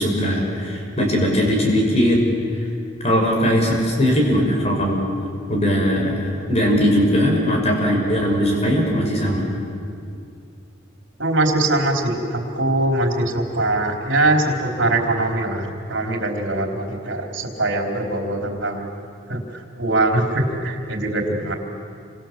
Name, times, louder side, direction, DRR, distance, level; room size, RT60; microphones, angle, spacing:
voice 1, 0.0-2.2 3.0-5.0 5.5-9.4, equal, 35° left, 0 dB, 6.0 m, -19 dB
voice 2, 11.2-18.9 19.3-21.5, right 2 dB, 70° right, 2 dB, 3.9 m, -22 dB
29.0 x 25.0 x 7.5 m, 2.3 s
head